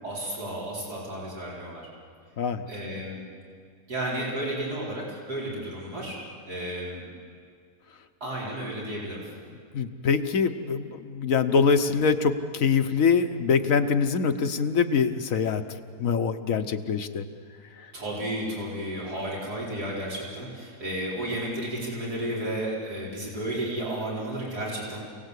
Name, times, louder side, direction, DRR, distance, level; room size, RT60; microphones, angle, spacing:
voice 1, 0.0-1.9 2.7-3.2 3.9-7.0 8.2-9.3 17.9-25.0, right 1 dB, 80° right, -5 dB, 5.6 m, -32 dB
voice 2, 9.7-15.6 16.0-17.2, left 5 dB, 60° left, 9 dB, 1.3 m, -24 dB
28.5 x 18.5 x 8.3 m, 2.2 s
omnidirectional pair, 1.6 m